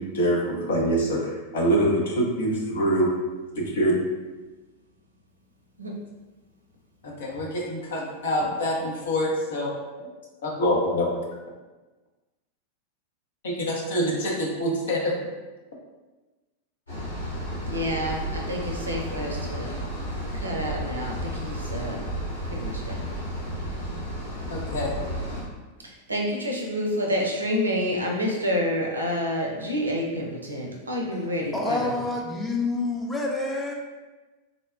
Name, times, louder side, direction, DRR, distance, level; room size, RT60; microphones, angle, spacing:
voice 1, 0.0-3.1 3.6-4.0 7.0-10.1 10.4-11.1 13.4-15.1 24.5-24.9, equal, 60° left, -1 dB, 0.6 m, -25 dB
sound 1, 16.9-25.4, equal, 80° left, 1.3 m, -32 dB
voice 2, 17.6-19.7 20.3-22.0 22.5-23.1 25.8-31.9, equal, 75° right, 0 dB, 0.5 m, -28 dB
voice 3, 31.5-33.7, left 3 dB, 10° left, -1 dB, 0.5 m, -27 dB
3.7 x 2.1 x 2.3 m, 1.2 s
figure-of-eight pair, 90°, 0 cm